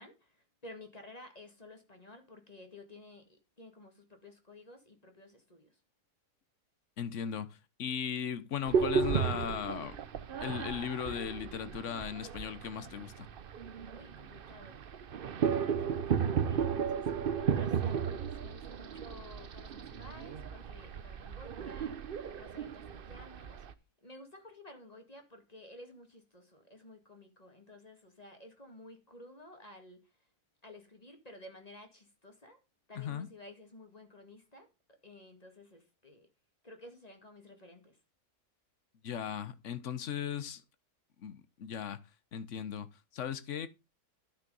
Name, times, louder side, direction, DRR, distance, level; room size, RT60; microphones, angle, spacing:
voice 1, 0.0-5.8 13.8-14.7 15.6-23.6 24.0-30.0 30.6-32.6 32.9-34.7 35.0-36.3 36.6-38.0, left 1 dB, 25° left, 2.1 m, -53 dB
voice 2, 7.0-10.0 10.4-13.3 32.9-33.3 39.0-40.6 41.2-42.0 42.3-43.7, left 8 dB, 55° left, 1.2 m, -37 dB
sound 1, 8.7-23.7, right 7 dB, 50° right, 0.7 m, -34 dB
12.0 x 6.5 x 5.5 m
omnidirectional pair, 1.6 m